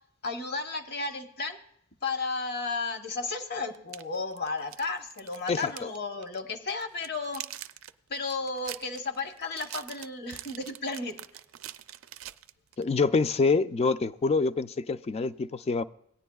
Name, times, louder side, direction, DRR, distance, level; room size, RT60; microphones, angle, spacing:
voice 1, 0.2-1.6 2.0-7.5 8.1-11.2, left 3 dB, 50° left, 0.9 m, -33 dB
sound 1, 2.9-3.0 3.7-6.0 6.2-6.4 6.8-12.9, right 13 dB, 80° right, 0.4 m, -44 dB
voice 2, 5.5-5.9 12.8-15.8, left 4 dB, 30° left, 0.3 m, -26 dB
17.5 x 9.8 x 2.3 m
head